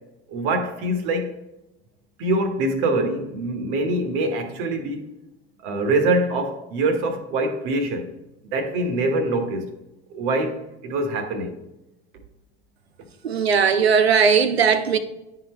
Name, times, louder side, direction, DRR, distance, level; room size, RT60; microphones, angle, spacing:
voice 1, 0.3-1.3 2.2-5.1 5.6-8.1 8.5-9.7 10.1-11.6, right 2 dB, 55° right, 1.3 m, -24 dB
voice 2, 13.2-15.0, right 6 dB, 90° right, 0.6 m, -18 dB
11.5 x 3.9 x 3.1 m
hypercardioid pair, 85°, 31 cm